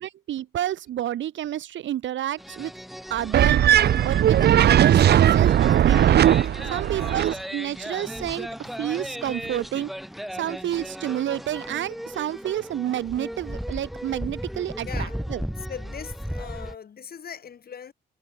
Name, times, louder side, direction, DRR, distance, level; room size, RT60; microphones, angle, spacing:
voice 1, 0.0-2.7 3.1-3.6 4.0-6.2 6.6-9.9 10.3-15.4, right 12 dB, 70° right, 1.7 m, -29 dB
sound 1, 2.4-16.8, equal, ahead, 2.6 m, -36 dB
sound 2, 3.3-7.3, right 11 dB, 55° right, 0.7 m, -18 dB
voice 2, 6.8-7.2 14.8-15.2 15.7-17.9, left 7 dB, 50° left, 3.5 m, -40 dB
cardioid pair, 90°, 20 cm